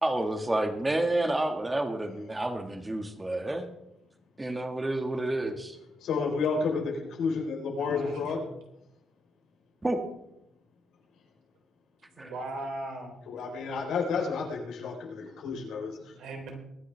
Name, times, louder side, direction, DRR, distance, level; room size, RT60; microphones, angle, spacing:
voice 1, 0.0-3.7 4.4-5.8 9.8-10.0 12.2-12.3, right 1 dB, 15° right, 6 dB, 1.6 m, -29 dB
voice 2, 6.0-8.4 13.3-16.0, left 5 dB, 90° left, 0 dB, 3.9 m, -31 dB
voice 3, 7.7-8.5 12.2-13.1 16.0-16.5, right 2 dB, 85° right, 2 dB, 3.5 m, -39 dB
22.5 x 9.9 x 3.3 m, 0.84 s
cardioid pair, 135°, 0 cm